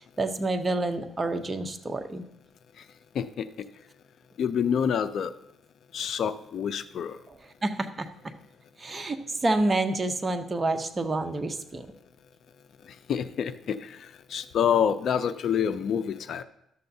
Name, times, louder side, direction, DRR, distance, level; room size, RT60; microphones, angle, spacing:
voice 1, 0.2-2.3 7.6-8.3 8.8-11.9, right 2 dB, 25° right, 7 dB, 0.7 m, -28 dB
voice 2, 3.1-3.5 4.4-5.3 5.9-7.2 13.1-16.4, left 8 dB, 65° left, 11 dB, 0.4 m, -27 dB
12.0 x 6.7 x 2.7 m, 0.80 s
cardioid pair, 90°, 0 cm